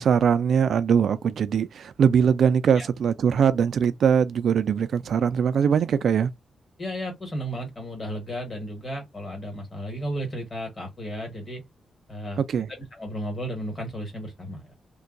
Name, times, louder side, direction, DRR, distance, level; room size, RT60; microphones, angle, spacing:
voice 1, 0.0-6.3 12.4-12.7, right 7 dB, 65° right, 0.3 m, -21 dB
voice 2, 6.8-11.6 12.1-12.4 12.9-14.8, equal, 25° left, 1.5 m, -34 dB
2.6 x 2.3 x 3.8 m
wide cardioid pair, 170°, 0 cm